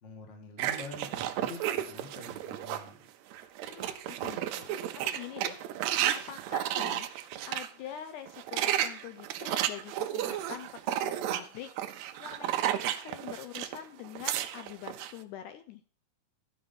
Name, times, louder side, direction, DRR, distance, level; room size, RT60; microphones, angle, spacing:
voice 1, 0.0-3.1, left 3 dB, 35° left, 3 dB, 1.2 m, -46 dB
sound 1, 0.6-2.9 3.3-7.7 8.3-13.8 14.0-15.1, right 12 dB, 90° right, 1.6 m, -33 dB
voice 2, 3.6-4.8 5.0-7.1 7.4-15.8, left 10 dB, 80° left, 9 dB, 1.9 m, -45 dB
12.5 x 5.1 x 5.4 m, 0.43 s
omnidirectional pair, 3.9 m